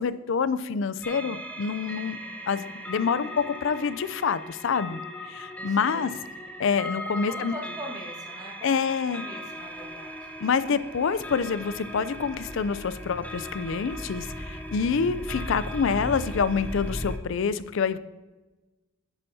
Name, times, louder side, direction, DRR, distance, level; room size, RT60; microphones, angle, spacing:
voice 1, 0.0-2.2 2.5-5.0 5.3-6.1 6.6-7.5 8.6-9.2 10.4-18.0, left 6 dB, 65° left, 14 dB, 0.4 m, -27 dB
sound 1, 1.0-17.2, equal, 10° left, 0.6 m, -38 dB
voice 2, 5.7-6.2 7.3-10.3, equal, 20° right, 0 dB, 1.5 m, -42 dB
9.8 x 9.0 x 2.7 m, 1.2 s
head